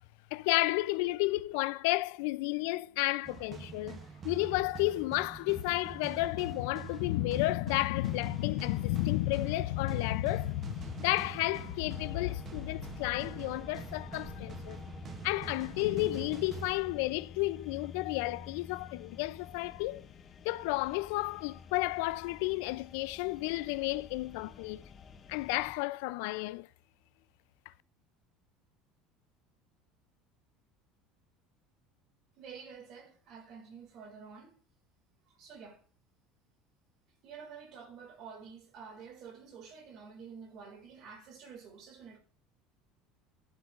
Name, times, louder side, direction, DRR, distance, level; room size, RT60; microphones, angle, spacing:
voice 1, 0.3-14.8 15.2-20.1 20.4-24.8 25.3-26.7, left 19 dB, 75° left, 0.3 m, -32 dB
sound 1, 3.2-17.4, right 5 dB, 25° right, 0.7 m, -46 dB
sound 2, 7.9-25.8, left 6 dB, 25° left, 0.5 m, -51 dB
sound 3, 11.9-17.0, left 2 dB, 10° right, 3.3 m, -52 dB
voice 2, 32.4-34.5 35.3-35.8 37.2-42.2, right 6 dB, 45° right, 2.1 m, -49 dB
11.5 x 7.9 x 2.4 m
cardioid pair, 160°, 0 cm